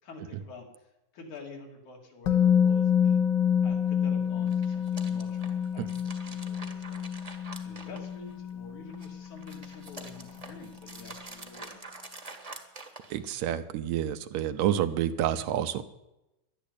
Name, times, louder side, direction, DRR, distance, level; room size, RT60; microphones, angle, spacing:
voice 1, 0.0-3.3 3.6-7.0 7.6-11.9, left 3 dB, 85° left, 1 dB, 4.3 m, -48 dB
Musical instrument, 2.3-10.2 10.4-10.6, left 8 dB, 70° left, 1.0 m, -28 dB
sound 1, 4.4-8.5 8.9-13.5, right 3 dB, 20° right, 0.9 m, -46 dB
voice 2, 13.1-15.8, right 11 dB, 80° right, 11 dB, 2.0 m, -29 dB
12.0 x 11.5 x 8.5 m, 0.91 s
omnidirectional pair, 3.3 m